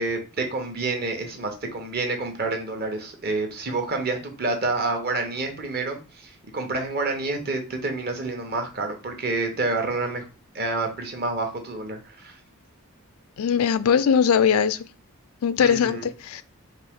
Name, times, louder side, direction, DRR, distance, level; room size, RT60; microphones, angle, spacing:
voice 1, 0.0-10.3 10.5-12.4 15.6-16.0, right 3 dB, 45° right, 1.0 m, -28 dB
voice 2, 13.4-14.9 15.4-16.4, left 7 dB, 70° left, 0.4 m, -20 dB
4.3 x 2.5 x 3.6 m
head